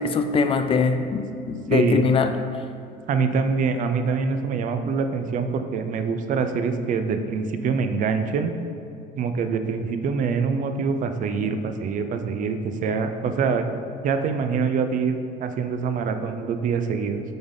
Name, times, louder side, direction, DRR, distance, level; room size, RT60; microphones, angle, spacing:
voice 1, 0.0-2.3, left 4 dB, 30° left, 8 dB, 0.4 m, -22 dB
voice 2, 1.7-2.1 3.1-8.5 9.2-17.2, right 5 dB, 45° right, 8 dB, 0.5 m, -25 dB
8.6 x 4.0 x 3.6 m, 2.6 s
cardioid pair, 130°, 18 cm